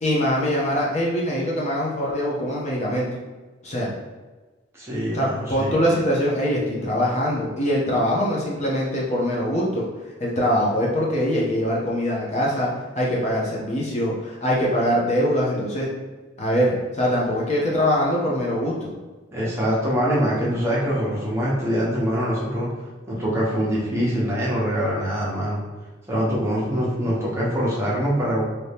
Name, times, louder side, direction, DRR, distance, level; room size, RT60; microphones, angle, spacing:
voice 1, 0.0-3.1 3.6-3.9 5.1-9.8 10.2-12.7 13.0-15.9 16.4-18.9, equal, 35° left, -4 dB, 0.6 m, -23 dB
voice 2, 4.7-5.7 19.3-22.7 23.1-25.6 26.1-28.4, equal, 15° right, -6 dB, 0.8 m, -24 dB
2.7 x 2.7 x 3.4 m, 1.3 s
head